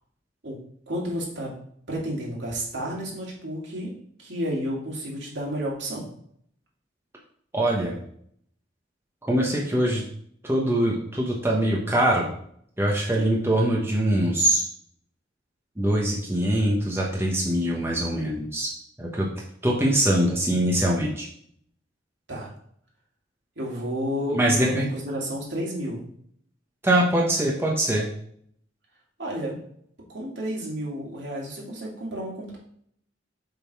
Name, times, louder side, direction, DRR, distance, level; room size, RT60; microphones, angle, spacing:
voice 1, 0.9-1.5 1.9-3.9 4.2-6.1 22.3-22.5 23.6-26.1 29.2-29.6 30.1-32.6, equal, 65° right, -3 dB, 2.3 m, -31 dB
voice 2, 7.5-8.0 9.2-10.0 10.4-12.3 12.8-14.6 15.8-18.7 19.0-19.3 19.6-21.3 24.3-24.8 26.8-28.1, right 1 dB, 15° right, -3 dB, 1.0 m, -23 dB
7.1 x 3.9 x 4.7 m, 0.65 s
head